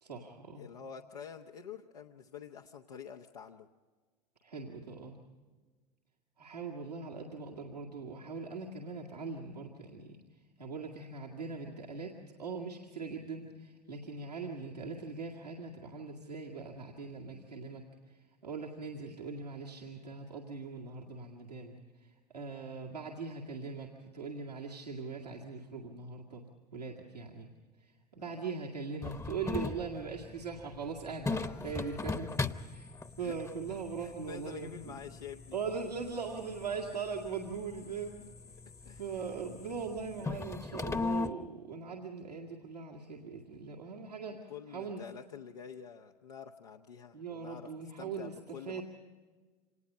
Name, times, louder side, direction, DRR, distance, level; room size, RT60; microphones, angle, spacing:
voice 1, 0.0-0.6 4.4-5.2 6.4-10.2 10.6-12.1 12.4-17.8 18.4-21.8 22.0-26.4 26.7-27.5 27.8-34.9 35.5-38.2 39.0-45.0 47.1-48.8, right 5 dB, 90° right, -3 dB, 2.1 m, -41 dB
voice 2, 0.5-3.7 28.2-28.5 31.6-31.9 33.2-33.4 33.7-35.6 38.8-39.2 44.3-48.8, left 7 dB, 80° left, 1 dB, 0.9 m, -48 dB
sound 1, 29.0-41.3, left 4 dB, 15° left, 0.9 m, -40 dB
26.5 x 19.5 x 5.4 m, 1.4 s
figure-of-eight pair, 70°, 20 cm